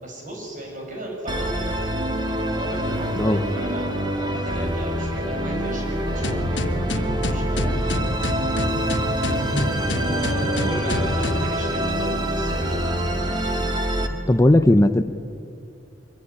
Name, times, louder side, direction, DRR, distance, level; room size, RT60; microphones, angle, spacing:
voice 1, 0.0-8.1 9.7-12.9, right 1 dB, 45° right, 0 dB, 7.6 m, -35 dB
Musical instrument, 1.3-14.1, equal, 25° right, 2.1 m, -25 dB
sound 1, 6.2-11.5, left 1 dB, 70° left, 1.4 m, -27 dB
voice 2, 14.3-15.1, left 1 dB, 15° left, 10 dB, 0.7 m, -17 dB
24.0 x 22.5 x 9.9 m, 2.4 s
head